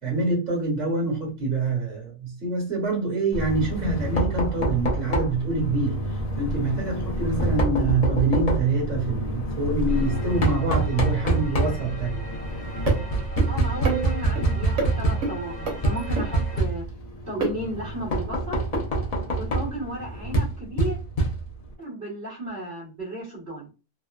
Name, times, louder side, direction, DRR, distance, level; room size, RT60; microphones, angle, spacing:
voice 1, 0.0-12.2, right 3 dB, 35° right, -3 dB, 1.6 m, -26 dB
Knock, 3.3-21.7, right 2 dB, 50° left, 0.5 m, -26 dB
sound 1, 9.9-16.6, right 1 dB, 65° left, 1.0 m, -37 dB
sound 2, 12.9-13.0 13.4-13.5 13.9-14.4 14.8-14.9 15.2-15.3 15.7-15.8 16.2-16.3 17.4-17.6 18.7-18.8, right 4 dB, 80° right, 1.2 m, -26 dB
voice 2, 13.4-16.8 17.3-18.6 19.3-21.0 21.8-23.7, right 1 dB, 55° right, -7 dB, 1.4 m, -34 dB
3.0 x 2.1 x 2.2 m, 0.31 s
omnidirectional pair, 1.2 m